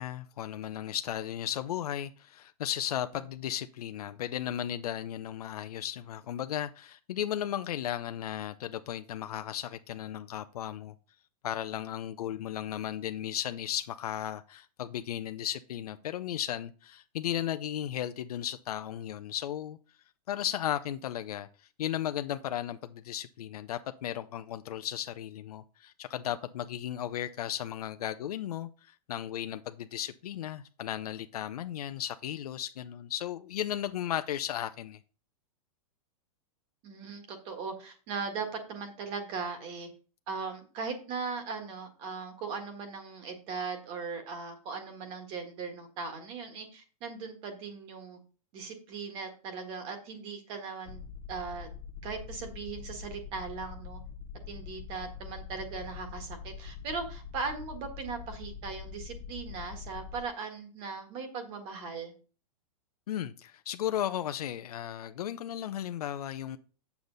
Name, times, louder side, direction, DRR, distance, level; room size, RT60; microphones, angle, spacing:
voice 1, 0.0-11.0 11.4-19.8 20.3-35.0 63.1-66.6, left 11 dB, 80° left, 0.6 m, -35 dB
voice 2, 36.8-39.9 40.3-48.2 48.5-51.0 51.3-51.7 52.0-54.0 54.5-62.1, right 5 dB, 30° right, 1.6 m, -39 dB
sound 1, 50.9-60.2, left 7 dB, 45° left, 0.8 m, -44 dB
8.0 x 7.0 x 3.9 m
supercardioid pair, 165°, 19 cm